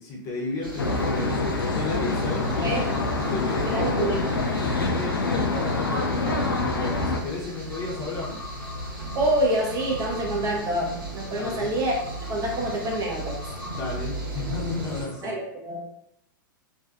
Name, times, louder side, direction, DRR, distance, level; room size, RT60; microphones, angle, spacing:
voice 1, 0.0-1.4 1.7-8.4 11.3-11.7 13.7-15.3, left 3 dB, 30° left, -3 dB, 0.7 m, -33 dB
sound 1, 0.6-15.0, right 2 dB, 80° right, 1.0 m, -37 dB
Traffic noise roadway noise, 0.8-7.2, left 3 dB, 90° left, 0.4 m, -26 dB
sound 2, 1.5-15.3, left 2 dB, 10° left, 0.3 m, -44 dB
voice 2, 2.6-3.2 3.7-4.2 9.1-11.9 12.3-13.4 15.2-15.8, right 1 dB, 25° right, -2 dB, 0.6 m, -27 dB
2.5 x 2.3 x 2.3 m, 0.78 s
hypercardioid pair, 105°, 12 cm